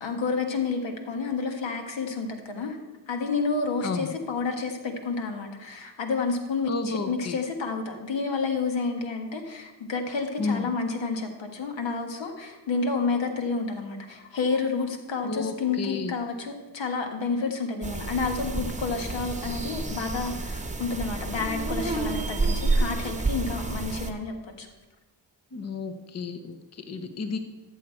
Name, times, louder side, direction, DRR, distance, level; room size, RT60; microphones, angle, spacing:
voice 1, 0.0-2.8 3.1-24.7, left 4 dB, 75° left, 4 dB, 1.6 m, -30 dB
voice 2, 6.6-7.4 10.4-10.7 15.2-16.2 25.5-27.4, left 4 dB, 35° left, 8 dB, 0.9 m, -32 dB
sound 1, 17.8-24.1, right 3 dB, 15° right, 1.0 m, -29 dB
13.0 x 6.5 x 4.5 m, 1.1 s
supercardioid pair, 50°, 45 cm